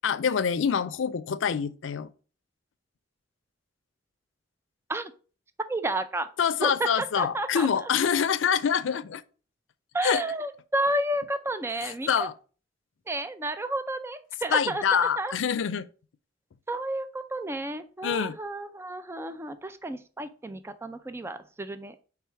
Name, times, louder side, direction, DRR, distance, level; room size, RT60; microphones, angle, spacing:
voice 1, 0.0-2.1 6.4-9.2 10.0-10.2 11.8-12.3 14.5-15.9 18.0-18.4, left 7 dB, 85° left, 0.4 m, -26 dB
voice 2, 5.7-6.3 6.6-7.9 9.9-12.3 13.1-15.3 16.7-22.0, right 1 dB, 15° right, 0.4 m, -31 dB
4.8 x 3.6 x 5.6 m
head